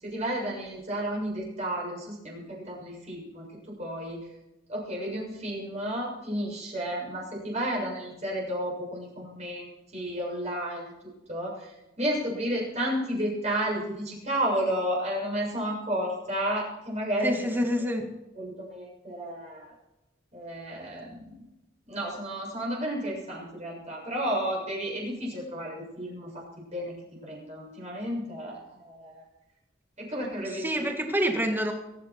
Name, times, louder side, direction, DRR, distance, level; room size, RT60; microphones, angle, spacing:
voice 1, 0.0-3.5 3.8-4.2 4.7-10.9 11.3-11.7 12.0-17.3 18.4-19.7 20.3-21.3 21.9-26.4 26.7-26.9 27.2-29.2 30.0-30.9, right 1 dB, 35° right, -3 dB, 6.9 m, -32 dB
voice 2, 17.2-18.1 30.5-31.7, equal, 10° right, 3 dB, 2.0 m, -27 dB
23.5 x 11.0 x 4.6 m, 0.94 s
head